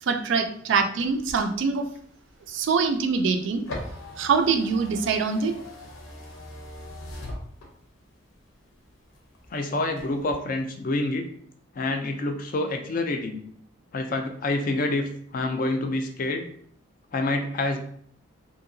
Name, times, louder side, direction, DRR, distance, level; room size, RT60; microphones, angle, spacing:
voice 1, 0.0-1.9 2.5-3.6 4.2-5.5, right 5 dB, 60° right, 6 dB, 0.3 m, -24 dB
sound 1, 1.0-8.1 8.5-9.5 9.9-10.3, left 1 dB, 80° left, 0.7 m, -41 dB
voice 2, 9.5-11.3 11.8-13.4 13.9-16.5 17.1-17.8, left 2 dB, 40° left, 5 dB, 0.3 m, -27 dB
2.8 x 2.7 x 2.6 m, 0.63 s
head